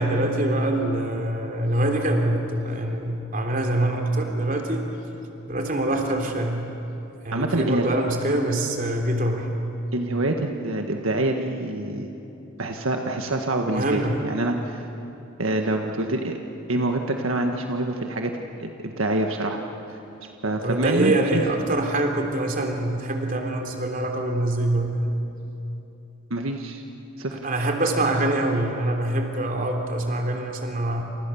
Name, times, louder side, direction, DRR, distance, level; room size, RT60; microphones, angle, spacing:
voice 1, 0.0-4.9 5.5-6.7 7.2-9.5 13.7-14.2 20.6-25.2 27.3-31.0, right 1 dB, 45° right, 2 dB, 3.3 m, -24 dB
voice 2, 7.3-7.9 9.9-12.1 12.6-14.9 15.4-16.4 16.7-19.6 20.4-21.4 26.3-26.8 27.2-27.4, right 2 dB, 85° right, 3 dB, 1.6 m, -26 dB
29.0 x 28.5 x 7.1 m, 2.9 s
head